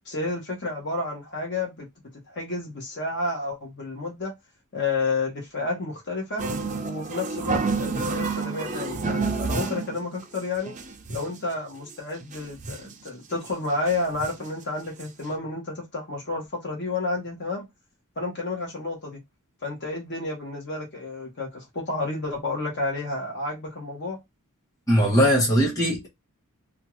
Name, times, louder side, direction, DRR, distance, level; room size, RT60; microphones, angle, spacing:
voice 1, 0.0-1.9 2.3-4.3 4.7-6.4 6.8-10.7 11.1-17.6 18.2-19.2 19.6-24.2, left 3 dB, 50° left, 1.0 m, -30 dB
sound 1, 6.4-10.0 10.3-10.4 10.7-11.4 11.9-12.0 12.2-13.0 13.4-13.5 13.9-14.5 15.0-15.1 15.3-15.4, right 4 dB, 35° right, 0.5 m, -29 dB
voice 2, 24.9-26.1, equal, 15° left, 1.1 m, -20 dB
2.6 x 2.3 x 3.0 m
head